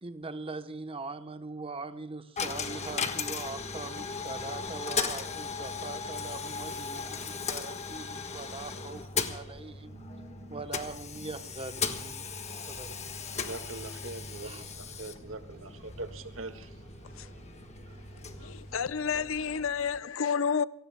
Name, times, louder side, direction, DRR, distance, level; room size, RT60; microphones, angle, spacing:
voice 1, 0.0-10.0 10.5-12.9 14.4-14.7, right 3 dB, 25° right, 0.9 m, -42 dB
Coin (dropping), 2.4-19.3, left 5 dB, 35° left, 1.4 m, -37 dB
voice 2, 9.8-10.6 11.2-11.3 13.3-14.5 14.8-16.7, right 2 dB, 80° right, 1.7 m, -43 dB
sound 1, 12.7-20.0, equal, 50° right, 2.2 m, -53 dB
voice 3, 18.4-20.6, left 6 dB, 75° left, 0.6 m, -30 dB
28.5 x 18.5 x 2.2 m
head